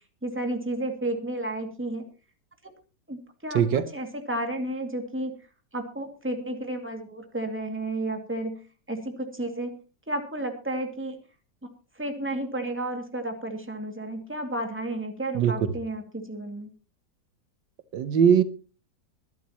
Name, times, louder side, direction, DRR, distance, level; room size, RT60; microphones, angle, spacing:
voice 1, 0.2-2.0 3.1-5.3 5.7-8.6 8.9-9.8 10.1-11.2 12.0-16.7, right 1 dB, 5° right, 2.2 m, -32 dB
voice 2, 3.5-3.9 15.3-15.5 17.9-18.4, right 8 dB, 80° right, 1.6 m, -20 dB
23.5 x 11.5 x 3.0 m
omnidirectional pair, 2.0 m